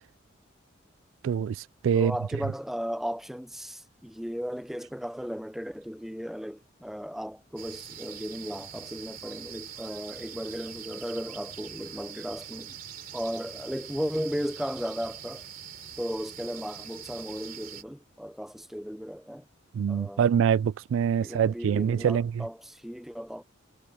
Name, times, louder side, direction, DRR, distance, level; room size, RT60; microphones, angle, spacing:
voice 1, 1.2-2.1 19.7-22.4, right 8 dB, 80° right, 0.3 m, -25 dB
voice 2, 1.9-12.8 13.1-15.5 16.0-19.4 19.9-20.2 21.2-23.4, equal, ahead, 0.5 m, -35 dB
sound 1, 7.6-17.8, right 8 dB, 45° right, 3.3 m, -43 dB
head